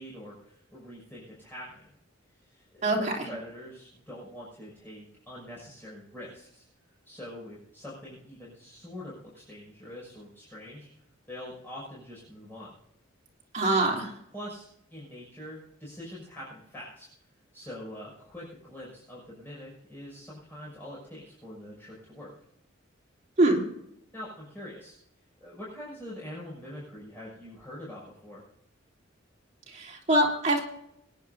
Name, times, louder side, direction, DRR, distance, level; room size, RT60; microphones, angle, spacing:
voice 1, 0.0-1.9 2.4-6.6 7.0-10.9 11.3-12.7 14.3-17.1 17.5-22.3 24.1-25.0 25.4-28.4, left 1 dB, 10° left, -7 dB, 6.2 m, -44 dB
voice 2, 2.8-3.3 13.5-14.1 23.4-23.6 29.7-30.6, right 1 dB, 40° right, -2 dB, 3.3 m, -24 dB
25.5 x 10.5 x 2.7 m, 0.78 s
head